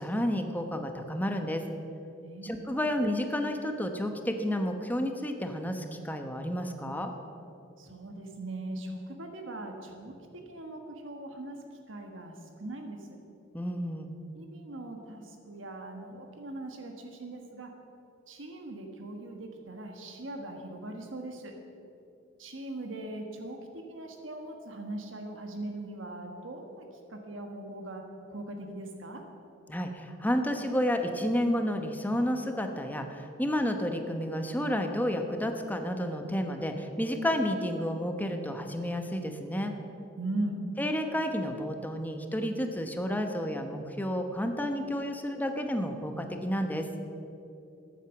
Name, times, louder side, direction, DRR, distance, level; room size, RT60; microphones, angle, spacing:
voice 1, 0.0-1.6 2.4-7.1 13.5-14.1 29.7-39.7 40.8-46.9, equal, 10° left, 5 dB, 1.0 m, -31 dB
voice 2, 2.2-2.5 7.8-10.1 10.5-11.6 11.9-13.2 14.3-17.7 18.3-21.5 22.4-28.0 28.3-29.2 40.2-40.6, right 1 dB, 70° right, 4 dB, 1.4 m, -40 dB
14.0 x 9.2 x 7.1 m, 2.7 s
head